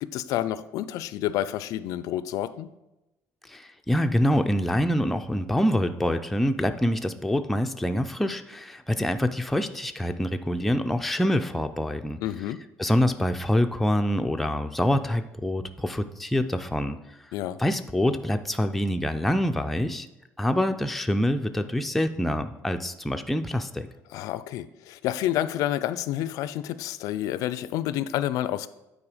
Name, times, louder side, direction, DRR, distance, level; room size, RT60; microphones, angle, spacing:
voice 1, 0.0-2.7 12.2-12.6 17.3-17.6 24.1-28.7, left 12 dB, 75° left, 15 dB, 0.4 m, -29 dB
voice 2, 3.5-12.2 12.8-17.0 17.6-20.1 20.4-23.9, equal, 5° left, 6 dB, 0.3 m, -25 dB
8.8 x 4.2 x 4.9 m, 0.97 s
cardioid pair, 170°, 6 cm